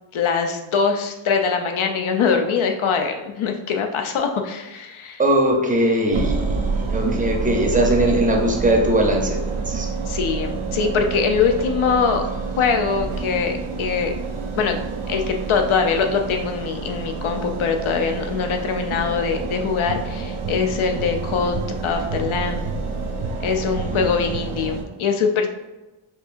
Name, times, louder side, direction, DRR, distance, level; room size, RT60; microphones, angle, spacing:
voice 1, 0.1-5.2 10.1-12.3 12.6-14.1 14.6-14.8 15.1-22.7 23.4-25.5, left 5 dB, 75° left, 5 dB, 0.6 m, -22 dB
voice 2, 5.2-9.9 23.6-24.1, right 1 dB, 15° right, 1 dB, 0.6 m, -20 dB
sound 1, 6.1-24.8, right 4 dB, 85° right, 0.7 m, -28 dB
4.7 x 2.8 x 2.5 m, 1.0 s
wide cardioid pair, 140°, 49 cm